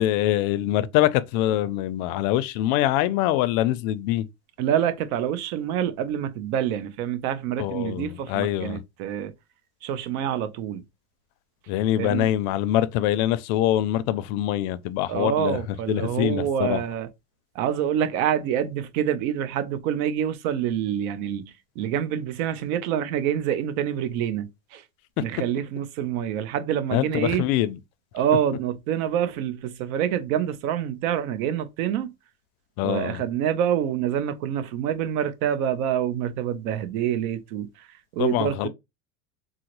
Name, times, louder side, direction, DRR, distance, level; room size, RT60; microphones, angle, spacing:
voice 1, 0.0-4.3 7.6-8.8 11.7-16.8 25.2-25.3 26.9-27.8 32.8-33.2 38.2-38.7, left 13 dB, 70° left, 0.5 m, -24 dB
voice 2, 4.6-9.3 9.8-10.8 12.0-12.3 15.1-17.1 17.5-24.8 25.2-27.5 28.1-32.1 32.8-38.7, right 10 dB, 75° right, 0.7 m, -26 dB
3.9 x 2.0 x 3.0 m
supercardioid pair, 125°, 43 cm